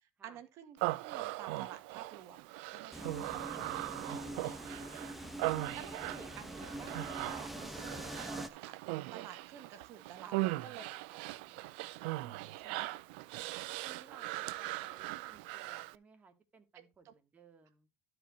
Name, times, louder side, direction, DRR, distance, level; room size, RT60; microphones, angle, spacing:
voice 1, 0.0-4.2 4.7-4.9 5.7-8.8 9.1-10.9 12.2-12.9 16.7-17.1, right 9 dB, 60° right, 1.6 m, -51 dB
Human voice, 0.8-16.0, right 19 dB, 85° right, 0.4 m, -40 dB
sound 1, 2.9-8.5, right 1 dB, 5° right, 1.1 m, -44 dB
voice 2, 10.2-12.1 13.3-17.9, right 5 dB, 25° right, 2.1 m, -60 dB
12.5 x 4.8 x 4.1 m
supercardioid pair, 115°, 5 cm